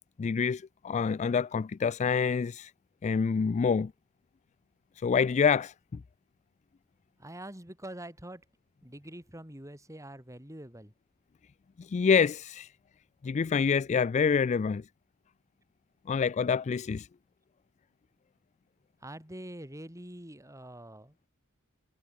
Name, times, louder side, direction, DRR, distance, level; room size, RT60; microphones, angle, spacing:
voice 1, 0.2-2.7 3.0-3.9 5.0-6.0 11.8-12.7 13.2-14.8 16.1-17.1, left 6 dB, 35° left, 0.3 m, -27 dB
voice 2, 7.2-8.4 8.8-10.9 19.0-21.2, right 1 dB, 15° right, 6.0 m, -45 dB
head